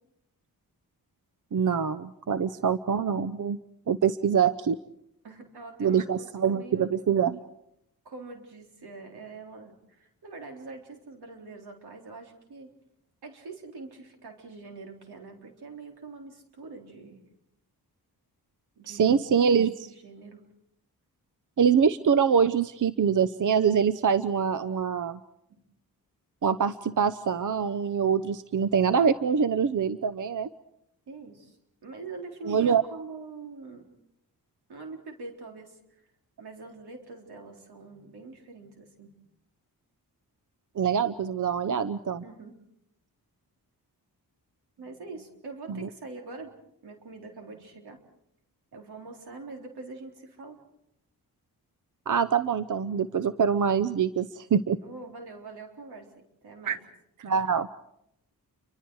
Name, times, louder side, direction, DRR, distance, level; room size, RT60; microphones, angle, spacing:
voice 1, 1.5-3.6 3.9-4.8 5.8-7.4 18.9-19.9 21.6-25.2 26.4-30.5 32.5-32.8 40.8-42.2 45.7-45.9 52.1-54.8 56.7-56.8 57.2-57.7, right 7 dB, 55° right, 13 dB, 0.8 m, -24 dB
voice 2, 5.2-7.0 8.0-12.7 13.2-17.2 18.8-19.5 19.8-20.4 25.5-25.6 31.1-31.6 31.8-33.9 34.7-35.8 36.4-39.2 42.2-42.5 44.8-46.5 46.8-48.0 48.7-50.6 54.8-56.1 56.4-56.8, right 3 dB, 85° right, 2 dB, 3.9 m, -44 dB
30.0 x 24.5 x 4.8 m, 0.79 s
cardioid pair, 70°, 38 cm